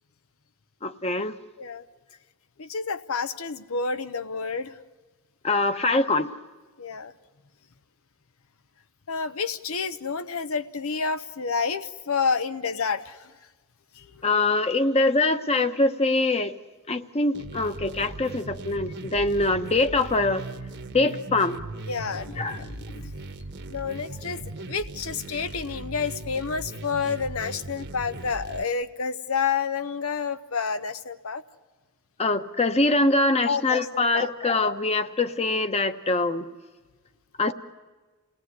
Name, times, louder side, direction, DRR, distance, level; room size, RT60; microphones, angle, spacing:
voice 1, 0.8-1.4 5.4-6.3 14.2-16.5 16.9-20.4 20.9-21.6 22.4-22.6 32.2-36.5 37.4-37.5, left 2 dB, 30° left, 9 dB, 1.1 m, -23 dB
voice 2, 2.6-4.8 6.8-7.1 9.1-13.3 13.9-14.5 21.9-23.1 23.7-31.4 33.5-34.3, left 5 dB, 85° left, 11 dB, 0.9 m, -29 dB
sound 1, 17.3-28.6, right 2 dB, 55° right, 1.3 m, -39 dB
29.0 x 18.0 x 9.6 m, 1.3 s
head